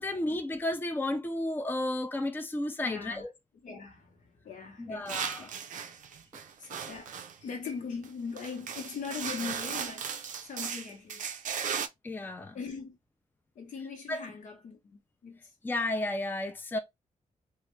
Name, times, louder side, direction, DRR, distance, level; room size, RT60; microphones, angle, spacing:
voice 1, 0.0-3.3 4.8-5.5 12.0-12.6 14.1-14.3 15.6-16.8, left 1 dB, 15° left, 0.5 m, -32 dB
voice 2, 2.8-3.2 3.6-4.2 4.4-5.5 6.6-7.1 7.4-10.1 10.4-11.3 12.5-13.0 13.6-15.4, left 5 dB, 80° left, 1.1 m, -40 dB
sound 1, 5.1-7.4 8.0-8.1 8.4-11.9, right 7 dB, 85° right, 0.4 m, -36 dB
3.2 x 2.4 x 3.1 m
wide cardioid pair, 115°, 13 cm